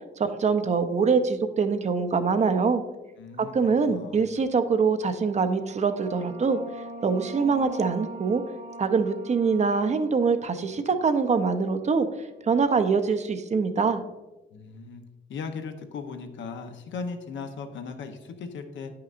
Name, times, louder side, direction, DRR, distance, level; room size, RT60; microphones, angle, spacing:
voice 1, 0.2-2.8 3.4-6.6 7.0-8.4 8.8-12.1 12.5-14.0, right 5 dB, 35° right, 9 dB, 0.6 m, -24 dB
voice 2, 3.2-4.2 14.5-15.0 15.3-18.9, left 5 dB, 70° left, 6 dB, 0.9 m, -37 dB
sound 1, 4.9-12.2, right 3 dB, 70° right, 1.3 m, -43 dB
9.5 x 5.7 x 2.5 m, 1.1 s
cardioid pair, 90°, 20 cm